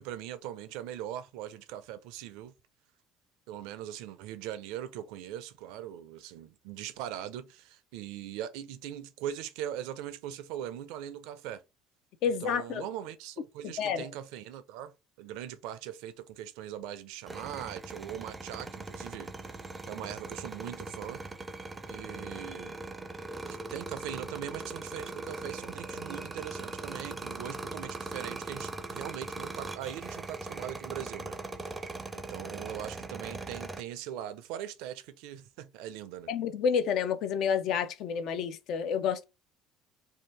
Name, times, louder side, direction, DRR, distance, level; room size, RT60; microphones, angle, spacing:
voice 1, 0.0-2.5 3.5-11.6 12.4-19.3 19.9-21.2 21.9-22.7 23.5-31.4 31.6-31.8 32.1-36.3, right 11 dB, 80° right, 0.4 m, -41 dB
voice 2, 12.2-12.9 13.6-14.1 36.3-39.2, left 7 dB, 65° left, 0.4 m, -29 dB
sound 1, 17.3-33.8, right 3 dB, 20° right, 0.4 m, -40 dB
2.7 x 2.2 x 3.2 m
supercardioid pair, 95°, 0 cm